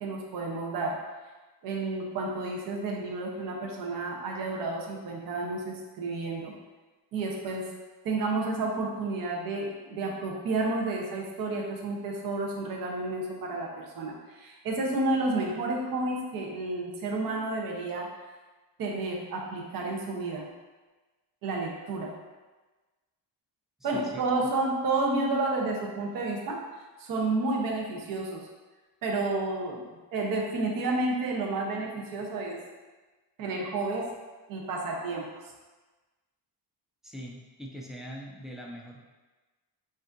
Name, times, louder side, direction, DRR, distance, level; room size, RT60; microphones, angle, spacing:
voice 1, 0.0-0.9 1.6-6.5 7.1-7.6 8.0-18.1 18.8-20.5 21.4-22.1 23.8-26.6 27.0-28.4 29.0-29.8 30.1-32.6 33.4-34.1 34.5-35.4, right 2 dB, 60° right, -1 dB, 0.9 m, -31 dB
voice 2, 23.8-24.2 37.0-39.0, equal, ahead, -2 dB, 0.3 m, -42 dB
7.4 x 2.7 x 2.6 m, 1.2 s
cardioid pair, 165°, 40 cm